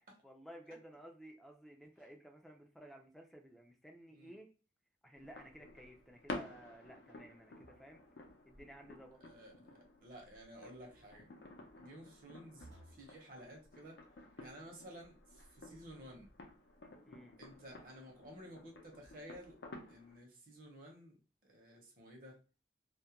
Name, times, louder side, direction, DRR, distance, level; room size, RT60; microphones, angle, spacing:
voice 1, 0.2-4.5 5.0-8.0 8.5-9.2 17.1-17.4, right 1 dB, ahead, 2 dB, 0.3 m, -55 dB
sound 1, 5.1-20.2, left 2 dB, 85° left, 0.5 m, -52 dB
sound 2, 7.6-8.1 10.6-11.1 12.6-13.1 15.6-16.3, right 1 dB, 90° right, 0.8 m, -61 dB
voice 2, 9.2-11.3 11.8-14.0 14.4-16.3 17.4-19.6 19.9-22.4, equal, 50° right, 0 dB, 0.8 m, -54 dB
2.3 x 2.1 x 2.8 m, 0.36 s
head